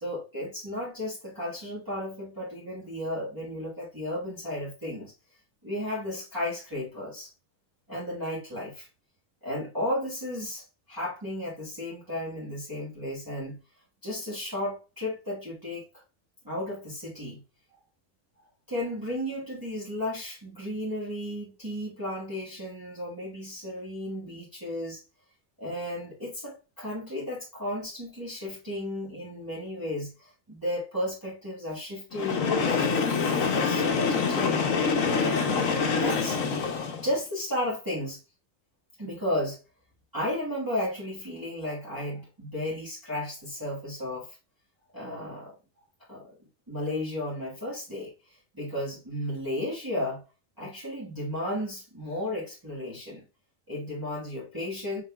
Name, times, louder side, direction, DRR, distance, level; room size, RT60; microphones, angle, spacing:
voice 1, 0.0-5.1 5.6-7.3 7.9-8.9 9.4-13.6 14.0-15.8 16.4-17.4 18.7-25.0 25.6-36.4 37.0-38.2 39.0-39.6 40.1-44.4 44.9-45.6 46.1-46.3 46.7-50.2 50.6-53.2 53.7-55.0, left 1 dB, 15° right, 1.4 m, -34 dB
Train, 32.1-37.1, left 5 dB, 90° left, 1.2 m, -26 dB
5.5 x 3.8 x 2.3 m
omnidirectional pair, 1.4 m